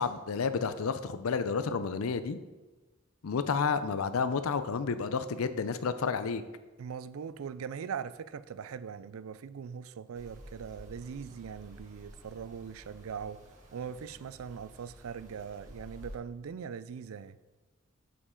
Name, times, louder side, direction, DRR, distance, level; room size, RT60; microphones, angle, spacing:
voice 1, 0.0-2.4 3.2-6.4, left 5 dB, 85° left, 12 dB, 0.5 m, -30 dB
voice 2, 6.8-13.4 13.7-17.4, right 7 dB, 80° right, 15 dB, 0.4 m, -41 dB
sound 1, 10.1-16.1, equal, 35° right, 1.5 m, -51 dB
8.2 x 7.1 x 3.8 m, 1.2 s
head